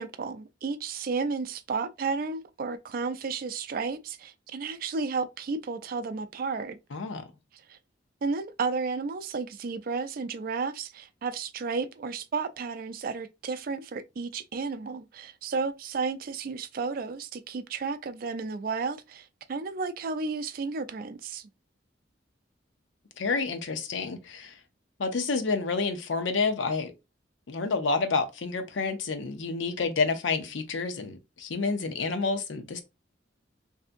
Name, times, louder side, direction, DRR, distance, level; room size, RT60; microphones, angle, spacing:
voice 1, 0.0-6.8 7.7-7.8 8.2-21.5, right 4 dB, 50° right, 0.3 m, -32 dB
voice 2, 6.9-7.2 23.2-24.6 25.0-26.9 27.5-32.8, left 4 dB, 85° left, 0.6 m, -29 dB
3.4 x 2.7 x 2.5 m
head